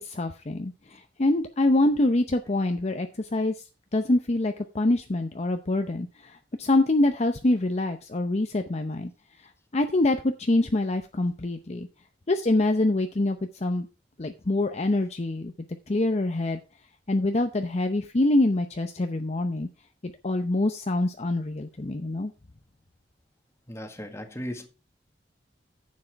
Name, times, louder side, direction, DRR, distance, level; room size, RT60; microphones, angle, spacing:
voice 1, 0.0-3.6 3.9-9.1 9.4-11.9 12.3-13.9 14.2-15.5 15.9-16.6 17.1-19.7 20.0-22.3, left 2 dB, 40° left, 0.7 m, -25 dB
voice 2, 23.7-24.7, equal, 15° left, 1.7 m, -36 dB
9.8 x 7.5 x 4.5 m
head